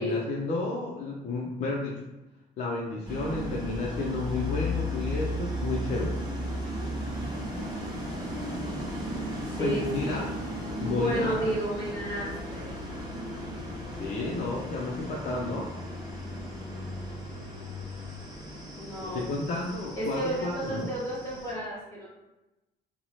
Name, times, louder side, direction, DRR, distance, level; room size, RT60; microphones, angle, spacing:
voice 1, 0.0-2.0 2.6-6.1 9.6-10.2 10.8-11.5 13.9-15.7 19.0-20.9, left 3 dB, 45° left, -3 dB, 0.4 m, -32 dB
sound 1, 3.0-21.5, equal, 25° right, 0.8 m, -35 dB
voice 2, 9.4-10.3 10.8-12.7 18.7-19.3 20.0-22.1, right 1 dB, 20° left, -9 dB, 0.8 m, -32 dB
2.7 x 2.0 x 3.0 m, 0.98 s
cardioid pair, 110°, 17 cm